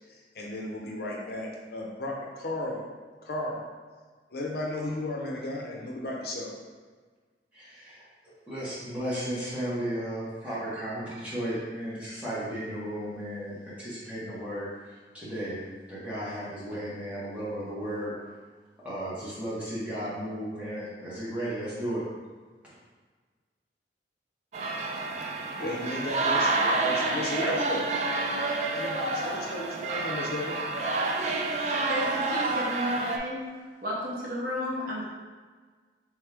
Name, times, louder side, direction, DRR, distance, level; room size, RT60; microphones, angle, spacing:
voice 1, 0.1-2.9 3.2-3.6 4.3-6.5 25.6-27.9 28.7-30.6, left 1 dB, 55° left, -1 dB, 0.6 m, -34 dB
voice 2, 7.5-8.1 8.5-15.6 15.9-18.1 18.8-22.0, right 1 dB, 10° right, -10 dB, 1.3 m, -34 dB
sound 1, 24.5-33.2, right 3 dB, 40° right, 0.3 m, -29 dB
voice 3, 31.5-33.4 33.8-35.1, equal, 55° right, -5 dB, 0.9 m, -33 dB
3.6 x 3.2 x 3.4 m, 1.4 s
head